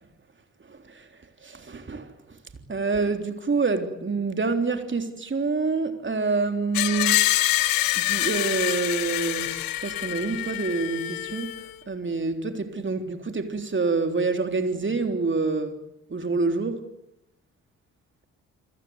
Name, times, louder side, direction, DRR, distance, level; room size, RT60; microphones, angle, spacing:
voice 1, 0.7-1.1 1.4-2.1 2.7-7.2 7.9-11.6 11.9-15.8 16.1-16.8, right 4 dB, 30° right, 3.6 m, -27 dB
Screech, 6.7-11.7, left 16 dB, 65° left, 1.3 m, -26 dB
28.0 x 21.5 x 8.1 m
figure-of-eight pair, 40°, 37 cm